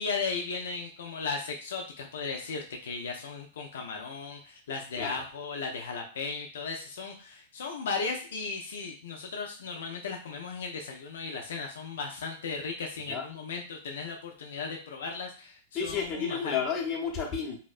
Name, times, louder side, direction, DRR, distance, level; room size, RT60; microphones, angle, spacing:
voice 1, 0.0-16.5, left 4 dB, 80° left, 2 dB, 0.4 m, -36 dB
voice 2, 15.7-17.6, left 6 dB, 30° left, 1 dB, 0.7 m, -31 dB
2.7 x 2.0 x 2.4 m, 0.39 s
hypercardioid pair, 120°, 0 cm